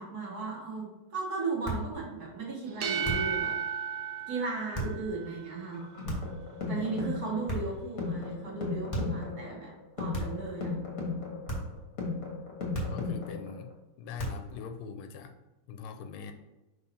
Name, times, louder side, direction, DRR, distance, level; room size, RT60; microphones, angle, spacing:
voice 1, 0.0-3.5 4.3-5.9 6.7-10.7, right 4 dB, 50° right, -2 dB, 1.7 m, -36 dB
sound 1, 1.6-1.9 3.0-3.4 4.7-5.0 6.0-6.4 7.5-7.9 8.9-9.2 10.1-10.5 11.5-11.8 12.7-13.1 14.2-14.5, right 1 dB, 15° left, 1.4 m, -35 dB
sound 2, 2.7-5.5, right 7 dB, 70° right, 0.9 m, -34 dB
sound 3, 5.7-13.7, left 4 dB, 45° left, 1.6 m, -36 dB
voice 2, 12.9-15.4 15.7-16.3, left 6 dB, 90° left, 7 dB, 1.5 m, -42 dB
5.5 x 4.1 x 4.3 m, 1.0 s
omnidirectional pair, 2.3 m